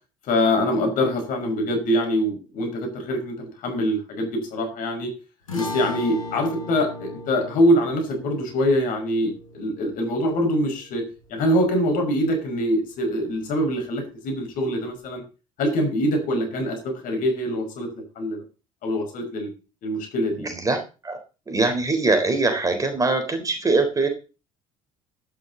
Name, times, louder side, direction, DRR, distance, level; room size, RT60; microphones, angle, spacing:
voice 1, 0.2-5.1 5.5-11.0 11.3-15.2 15.6-17.9 18.2-18.4 18.8-19.5 19.8-20.5, equal, 55° left, 4 dB, 5.6 m, -24 dB
sound 1, 5.5-12.0, left 2 dB, 80° left, 4.8 m, -37 dB
voice 2, 20.4-21.2 21.5-24.1, right 3 dB, 20° right, 5 dB, 4.1 m, -22 dB
14.0 x 12.0 x 4.0 m, 0.33 s
figure-of-eight pair, 60°, 17 cm